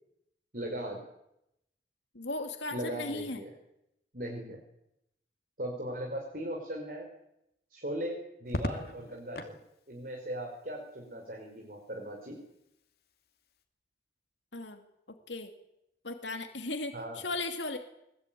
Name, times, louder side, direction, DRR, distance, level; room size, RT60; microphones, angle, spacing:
voice 1, 0.5-1.0 2.7-3.5 4.1-4.6 5.6-7.1 7.7-9.6 9.9-12.4 16.9-17.2, right 1 dB, 50° right, 1 dB, 5.2 m, -38 dB
voice 2, 2.1-3.4 14.5-14.8 15.3-15.5 16.0-17.8, left 2 dB, 85° left, 5 dB, 2.6 m, -36 dB
Crackle, 8.4-9.6 11.2-11.7, left 1 dB, 55° left, 2.7 m, -37 dB
22.5 x 22.0 x 9.3 m, 0.83 s
head